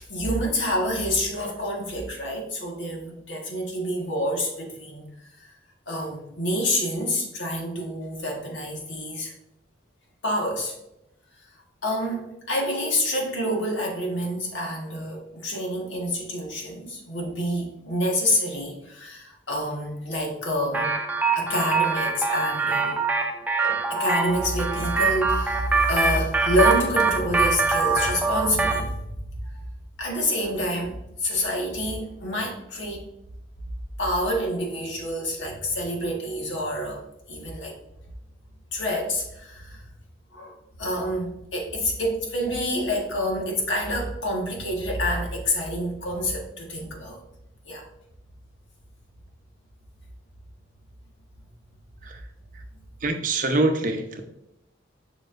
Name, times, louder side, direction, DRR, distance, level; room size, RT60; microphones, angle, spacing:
voice 1, 0.0-5.0 5.4-5.5 5.9-9.3 10.2-10.7 11.8-20.9 21.3-23.0 23.6-28.9 29.5-29.6 30.0-33.1 34.0-37.8 38.7-39.9 40.3-47.2 47.6-47.8, equal, 80° left, 0 dB, 1.6 m, -27 dB
sound 1, 20.7-28.9, right 4 dB, 10° right, 0.4 m, -24 dB
voice 2, 53.0-54.2, right 2 dB, 45° right, 4 dB, 0.8 m, -25 dB
7.1 x 5.6 x 2.6 m, 0.85 s
head